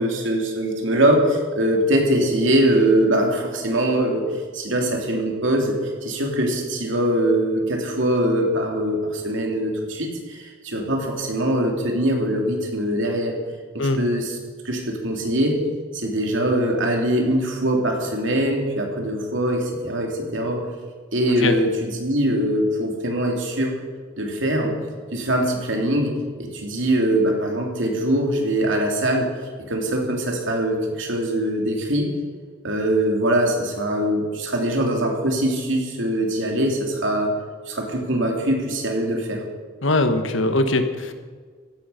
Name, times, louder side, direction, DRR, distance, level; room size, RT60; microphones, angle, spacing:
voice 1, 0.0-5.8 6.0-13.3 13.7-14.4 14.6-15.6 15.9-20.6 21.1-23.7 24.2-24.8 25.1-26.1 26.4-29.3 29.7-32.1 32.6-37.3 37.7-39.4, right 1 dB, 65° right, 1 dB, 3.0 m, -22 dB
voice 2, 39.8-41.1, left 2 dB, 70° left, 8 dB, 1.3 m, -21 dB
15.5 x 11.5 x 5.7 m, 1.5 s
head